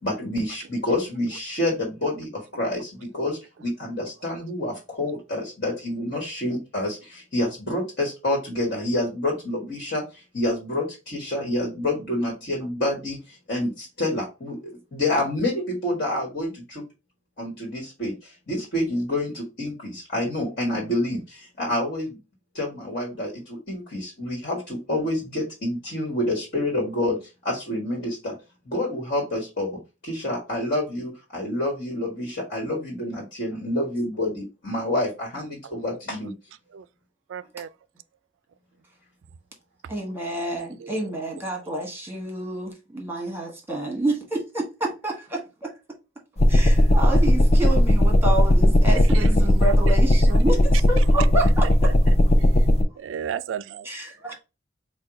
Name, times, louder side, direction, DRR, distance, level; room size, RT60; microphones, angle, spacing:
voice 1, 0.0-16.8 17.4-22.2 22.5-27.2 27.4-28.4 28.7-36.3, left 1 dB, 50° left, 1.5 m, -28 dB
voice 2, 37.3-37.7 40.5-41.0 49.1-49.3 49.6-49.9 53.0-53.9, right 8 dB, 85° right, 0.3 m, -34 dB
voice 3, 39.9-45.7 46.5-51.9 53.8-54.4, right 2 dB, 10° right, 1.3 m, -29 dB
sound 1, 46.4-52.8, left 1 dB, 35° left, 0.6 m, -17 dB
4.6 x 2.2 x 4.6 m
head